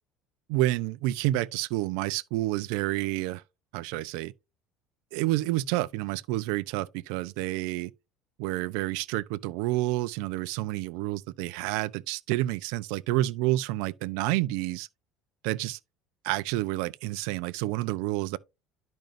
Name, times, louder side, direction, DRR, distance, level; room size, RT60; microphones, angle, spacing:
voice 1, 0.5-3.4 3.7-4.3 5.1-7.9 8.4-14.9 15.4-15.8 16.2-18.4, right 17 dB, 75° right, 0.4 m, -29 dB
10.5 x 5.2 x 2.6 m
cardioid pair, 180°, 0 cm